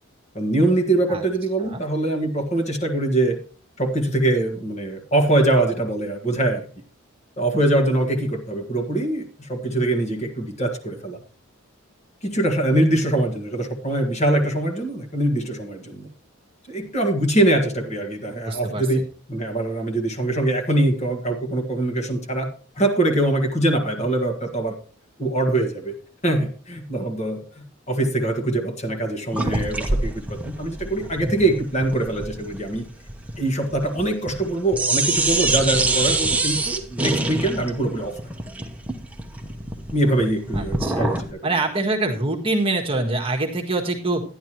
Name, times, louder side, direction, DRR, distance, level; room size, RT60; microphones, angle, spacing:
voice 1, 0.4-3.4 3.8-6.6 7.4-11.2 12.2-16.1 16.7-19.0 19.3-22.5 22.8-24.8 25.2-25.9 26.2-32.8 33.4-38.2 39.9-41.4, right 1 dB, 35° left, 3 dB, 1.7 m, -23 dB
voice 2, 18.4-18.8 40.5-41.1 41.4-44.2, right 2 dB, 25° right, 3 dB, 1.5 m, -24 dB
sound 1, 29.3-34.5 34.7-41.3, right 2 dB, 5° right, 1.0 m, -25 dB
11.5 x 10.5 x 3.0 m, 0.41 s
head